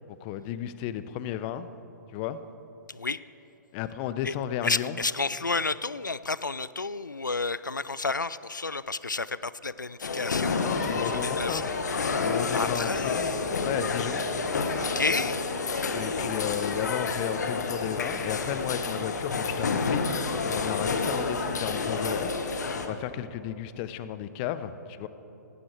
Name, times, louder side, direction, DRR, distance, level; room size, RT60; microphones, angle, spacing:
voice 1, 0.1-1.7 2.1-2.4 3.7-5.0 10.6-11.7 12.2-13.4 13.6-14.3 15.9-22.3 22.8-25.1, left 10 dB, 30° left, 13 dB, 0.7 m, -33 dB
voice 2, 2.9-3.2 4.2-4.3 4.6-11.0 11.4-11.7 12.5-13.4 14.8-15.5, left 3 dB, 90° left, 17 dB, 0.4 m, -31 dB
sound 1, 10.0-22.9, left 4 dB, 65° left, 1.5 m, -29 dB
17.0 x 16.0 x 4.6 m, 2.9 s
figure-of-eight pair, 120°, 10 cm